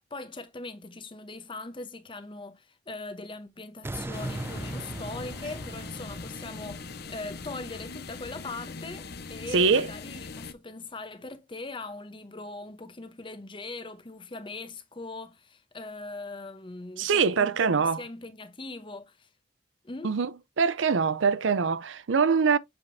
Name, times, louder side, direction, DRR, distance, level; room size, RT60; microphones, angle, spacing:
voice 1, 0.1-19.3 19.8-20.1, left 2 dB, 25° left, 0.8 m, -40 dB
sound 1, 3.8-8.9 9.4-9.5, right 2 dB, 10° right, 0.3 m, -40 dB
sound 2, 4.1-10.5, left 4 dB, 55° left, 0.7 m, -41 dB
voice 2, 9.5-9.9 17.0-18.0 20.0-20.3 20.6-22.6, right 5 dB, 80° right, 0.5 m, -23 dB
7.3 x 5.0 x 2.6 m
head